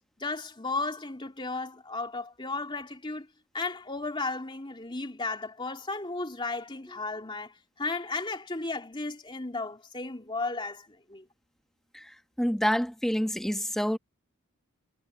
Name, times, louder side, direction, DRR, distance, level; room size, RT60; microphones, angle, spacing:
voice 1, 0.2-3.3 3.5-11.2, left 3 dB, 20° left, 2.8 m, -34 dB
voice 2, 12.4-14.0, equal, ahead, 1.0 m, -27 dB
head